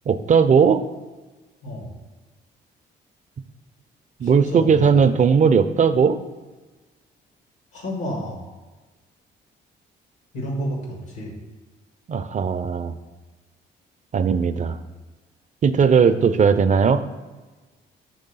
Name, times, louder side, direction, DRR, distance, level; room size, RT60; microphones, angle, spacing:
voice 1, 0.1-0.8 4.2-6.2 12.1-12.9 14.1-14.8 15.6-17.0, right 6 dB, 35° right, 11 dB, 0.4 m, -17 dB
voice 2, 1.6-1.9 4.2-5.1 7.7-8.4 10.3-11.3, equal, 80° left, 0 dB, 1.6 m, -30 dB
5.4 x 3.5 x 5.4 m, 1.3 s
hypercardioid pair, 55°, 21 cm